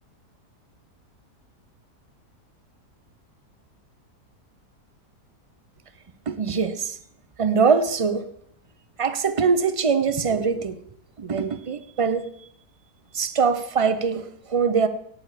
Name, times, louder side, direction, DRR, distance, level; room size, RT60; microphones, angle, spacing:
voice 1, 6.3-6.9 7.4-8.3 9.0-10.8 11.2-12.3 13.1-14.9, right 5 dB, 40° right, 10 dB, 0.5 m, -22 dB
17.0 x 8.9 x 5.0 m, 0.69 s
omnidirectional pair, 1.8 m